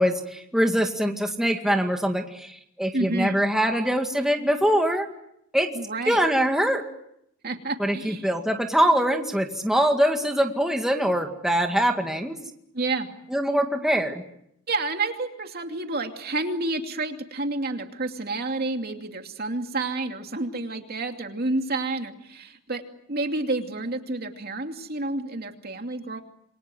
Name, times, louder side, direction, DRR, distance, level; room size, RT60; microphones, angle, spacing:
voice 1, 0.0-5.1 5.5-5.7 6.0-6.8 7.8-12.4 13.3-14.2, equal, ahead, 3 dB, 2.0 m, -23 dB
voice 2, 2.9-3.4 5.7-6.2 7.4-8.3 12.7-13.1 14.7-22.8 23.1-26.2, right 2 dB, 50° right, 4 dB, 2.6 m, -29 dB
28.0 x 23.5 x 7.8 m, 0.77 s
head